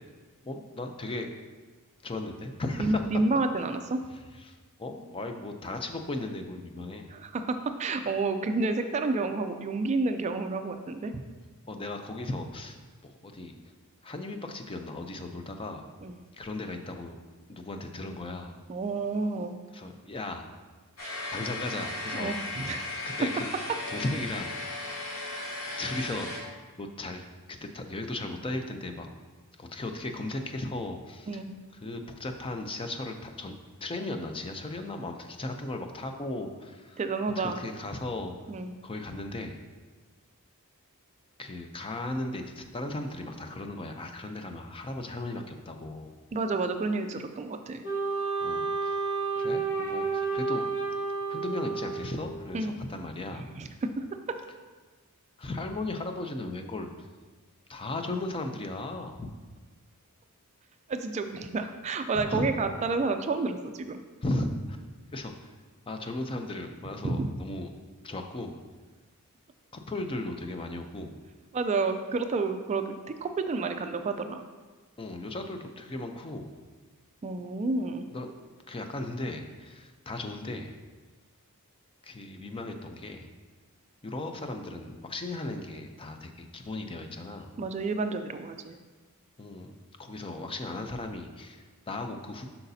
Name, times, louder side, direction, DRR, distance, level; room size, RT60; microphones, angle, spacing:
voice 1, 0.4-1.3 2.0-3.0 4.4-7.1 11.7-12.8 13.0-13.5 14.0-15.9 16.4-17.2 17.5-18.6 19.7-20.5 21.3-22.4 23.0-23.4 23.9-24.5 24.9-25.0 25.8-26.5 26.8-29.1 29.6-31.4 31.8-33.5 33.8-37.0 37.4-38.3 38.8-39.6 41.4-46.2 48.4-49.0 49.3-50.7 51.3-53.5 55.4-56.9 57.7-59.3 62.1-62.5 64.2-64.8 65.1-65.5 65.9-67.7 68.0-68.6 69.7-71.2 75.0-76.6 78.1-78.3 78.7-80.8 82.0-83.3 84.0-87.5 89.4-89.7 90.0-92.5, left 2 dB, 25° left, 5 dB, 0.5 m, -36 dB
voice 2, 2.8-4.0 7.1-11.1 16.0-16.2 18.7-19.6 22.1-23.0 31.3-31.5 37.0-37.6 38.5-38.7 46.3-47.8 52.5-52.8 53.3-53.7 54.0-54.4 60.9-64.0 67.0-67.3 71.5-72.9 73.2-74.4 77.2-78.1 87.6-88.8, right 3 dB, 30° right, 8 dB, 0.3 m, -30 dB
sound 1, 21.0-26.4, left 2 dB, 80° left, 1.8 m, -36 dB
Wind instrument woodwind instrument, 47.8-52.4, right 4 dB, 55° left, 1.6 m, -30 dB
8.0 x 5.7 x 2.7 m, 1.3 s
head